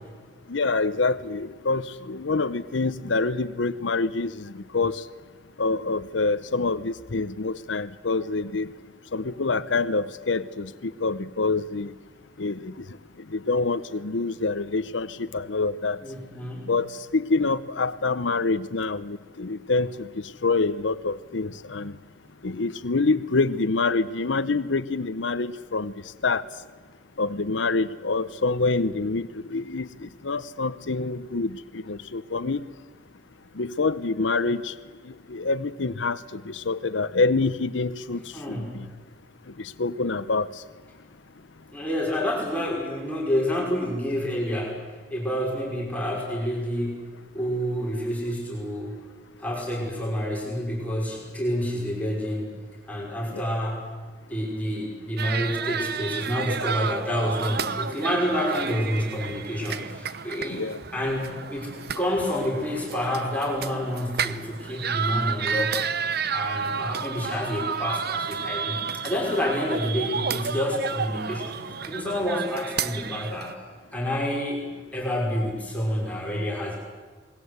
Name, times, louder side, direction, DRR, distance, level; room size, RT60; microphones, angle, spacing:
voice 1, 0.5-5.0 5.6-8.7 9.1-10.7 11.0-11.9 12.4-12.7 13.3-16.0 16.7-20.1 20.4-21.9 22.4-25.9 26.2-26.4 27.2-29.9 30.2-32.6 33.6-34.7 35.3-38.2 38.5-38.9 39.6-40.5 53.3-53.4 60.5-60.8, left 3 dB, 85° left, 12 dB, 0.9 m, -26 dB
voice 2, 16.0-16.7 38.3-38.8 41.7-49.0 49.4-52.5 52.9-53.9 54.3-60.6 60.9-65.8 66.3-73.6 73.9-76.8, equal, 10° left, -3 dB, 5.6 m, -28 dB
sound 1, 55.2-73.5, right 6 dB, 60° right, 0.9 m, -31 dB
28.0 x 20.5 x 8.1 m, 1.5 s
head